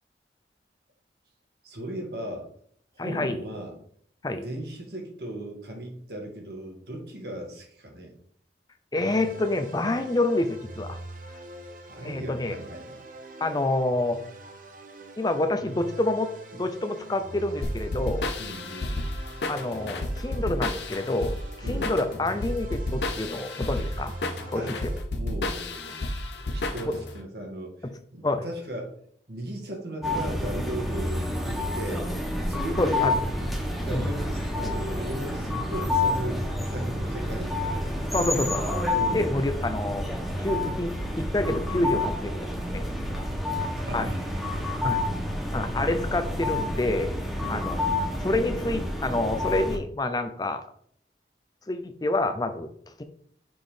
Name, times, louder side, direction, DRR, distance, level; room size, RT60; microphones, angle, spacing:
voice 1, 1.6-2.5 2.9-3.8 4.3-8.1 11.9-13.0 18.4-19.0 21.6-21.9 24.5-24.7 25.1-26.1 26.3-28.9 29.3-32.1 32.4-37.8 38.9-39.4 43.8-45.0 47.4-47.7, right 1 dB, 65° right, 1 dB, 1.7 m, -37 dB
voice 2, 3.0-3.4 4.2-4.4 8.9-11.0 12.0-12.6 13.4-14.2 15.2-18.3 19.5-21.4 21.7-24.1 24.5-24.6 26.8-26.9 27.8-27.9 28.2-28.4 32.8-33.2 33.9-34.1 38.1-38.6 39.1-40.1 40.4-42.9 43.9-44.1 44.8-45.0 45.5-47.1 47.5-47.8 48.2-50.6 51.7-52.7, left 2 dB, 20° left, 8 dB, 0.5 m, -27 dB
sound 1, 9.0-25.0, right 1 dB, 50° right, 0.8 m, -44 dB
sound 2, 17.6-27.2, left 1 dB, 75° left, 0.7 m, -31 dB
sound 3, 30.0-49.8, left 1 dB, ahead, 1.4 m, -29 dB
6.1 x 3.7 x 5.0 m, 0.62 s
head